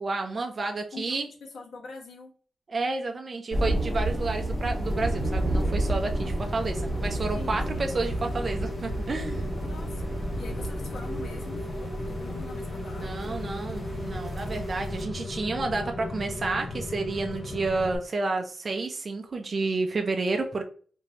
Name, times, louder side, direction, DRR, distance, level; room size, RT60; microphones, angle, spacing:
voice 1, 0.0-1.3 2.7-9.5 13.0-20.6, right 3 dB, 35° right, 4 dB, 0.3 m, -30 dB
voice 2, 0.9-2.3 7.3-7.9 9.6-13.4, left 3 dB, 75° left, 0 dB, 0.9 m, -44 dB
sound 1, 3.5-15.0, right 1 dB, ahead, 1.2 m, -31 dB
Rain, 4.8-18.0, left 1 dB, 40° left, 0.5 m, -36 dB
3.2 x 2.6 x 2.8 m, 0.43 s
wide cardioid pair, 180°, 0 cm